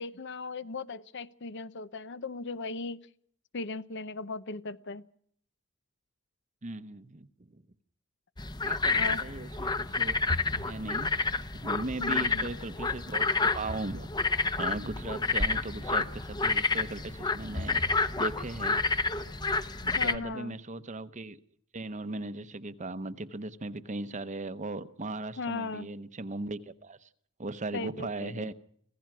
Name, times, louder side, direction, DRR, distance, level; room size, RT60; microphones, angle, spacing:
voice 1, 0.0-3.0 3.5-5.0 8.9-9.2 12.0-12.5 19.8-20.5 25.4-25.9 27.7-28.5, left 3 dB, 60° left, 0.8 m, -37 dB
voice 2, 6.6-7.6 8.6-10.2 10.6-11.1 11.5-14.1 14.6-18.8 19.8-21.4 21.7-27.1 27.4-28.5, right 2 dB, 35° right, 0.9 m, -38 dB
sound 1, 8.4-20.2, left 3 dB, 20° left, 0.9 m, -29 dB
26.5 x 16.0 x 6.1 m
head